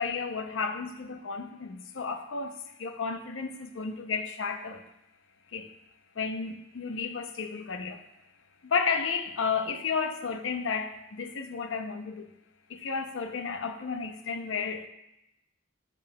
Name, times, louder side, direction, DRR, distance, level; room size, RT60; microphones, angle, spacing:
voice 1, 0.0-4.8 5.5-5.7 6.2-8.0 8.6-12.3 12.7-14.9, left 5 dB, 75° left, 0.6 m, -32 dB
10.0 x 5.1 x 2.2 m
head